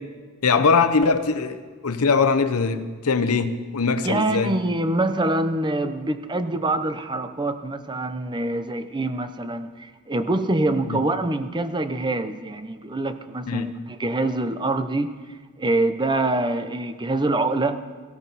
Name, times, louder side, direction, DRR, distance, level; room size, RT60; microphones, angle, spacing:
voice 1, 0.4-4.6 10.9-11.0 13.5-13.7, left 4 dB, 75° left, 0.8 m, -21 dB
voice 2, 4.0-15.1 15.6-17.8, right 2 dB, 20° right, 0.7 m, -25 dB
17.5 x 16.0 x 4.1 m
head